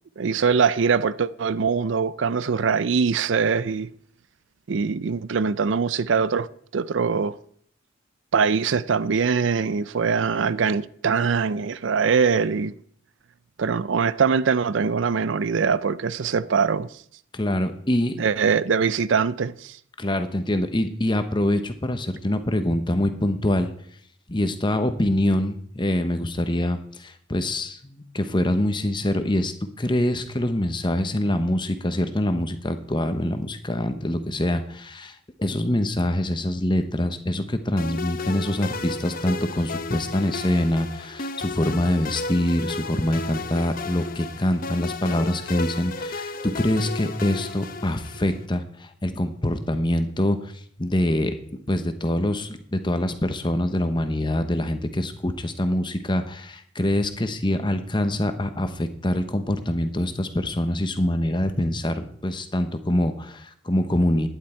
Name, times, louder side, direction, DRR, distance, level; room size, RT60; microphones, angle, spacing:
voice 1, 0.2-3.9 4.7-6.5 6.7-7.4 8.3-12.7 13.6-16.9 18.2-19.8, right 5 dB, 70° right, 0.5 m, -22 dB
voice 2, 17.3-18.2 20.0-23.7 24.3-51.3 51.7-64.3, left 1 dB, 25° left, 1.0 m, -25 dB
sound 1, 37.8-48.4, left 3 dB, 45° left, 0.8 m, -34 dB
12.0 x 10.5 x 4.5 m
head